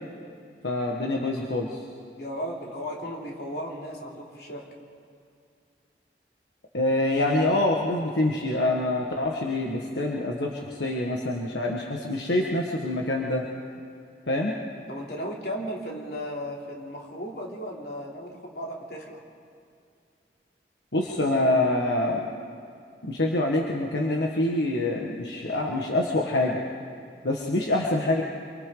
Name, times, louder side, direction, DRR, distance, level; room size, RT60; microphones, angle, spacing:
voice 1, 0.6-1.8 6.7-13.4 14.3-14.5 20.9-22.3 23.0-26.6 27.2-28.2, left 1 dB, 85° left, -1 dB, 1.7 m, -25 dB
voice 2, 2.1-4.7 14.9-19.2, equal, 65° left, -2 dB, 3.3 m, -35 dB
27.0 x 24.0 x 4.0 m, 2.4 s
head